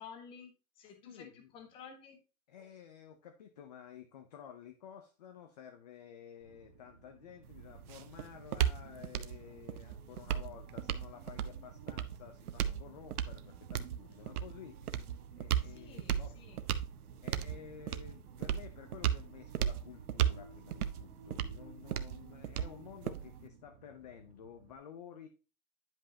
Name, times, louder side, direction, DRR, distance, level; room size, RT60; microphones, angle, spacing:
voice 1, 0.0-2.2 15.6-16.6, left 6 dB, 15° left, 6 dB, 0.9 m, -52 dB
voice 2, 1.0-1.5 2.5-16.4 17.2-25.3, left 8 dB, 30° left, 7 dB, 0.5 m, -52 dB
sound 1, 6.4-24.8, right 5 dB, 30° right, 1.9 m, -58 dB
sound 2, 7.4-23.5, right 10 dB, 90° right, 1.0 m, -36 dB
10.0 x 5.4 x 2.7 m, 0.32 s
hypercardioid pair, 170°, 43 cm